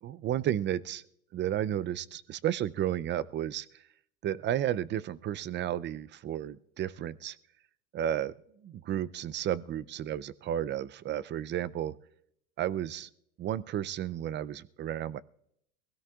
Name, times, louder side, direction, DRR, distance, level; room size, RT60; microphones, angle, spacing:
voice 1, 0.0-1.0 1.3-3.8 4.2-7.4 7.9-8.3 8.6-11.9 12.6-13.1 13.4-15.2, right 11 dB, 30° right, 17 dB, 0.4 m, -32 dB
22.0 x 16.5 x 2.4 m, 0.72 s
supercardioid pair, 115°, 38 cm